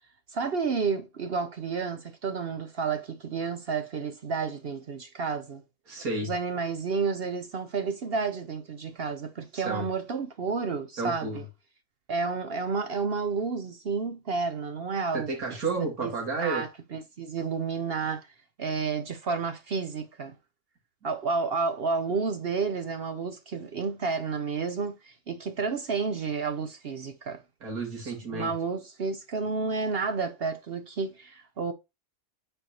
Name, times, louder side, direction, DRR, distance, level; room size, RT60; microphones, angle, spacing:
voice 1, 0.3-5.6 6.2-11.4 12.1-15.3 16.0-16.1 16.4-18.3 18.6-20.3 21.0-27.4 28.0-31.7, right 5 dB, 55° right, 0.8 m, -31 dB
voice 2, 5.9-6.3 9.5-9.9 11.0-11.4 15.1-16.6 27.6-28.5, right 3 dB, 85° right, 2.4 m, -31 dB
9.0 x 4.3 x 2.9 m
omnidirectional pair, 1.5 m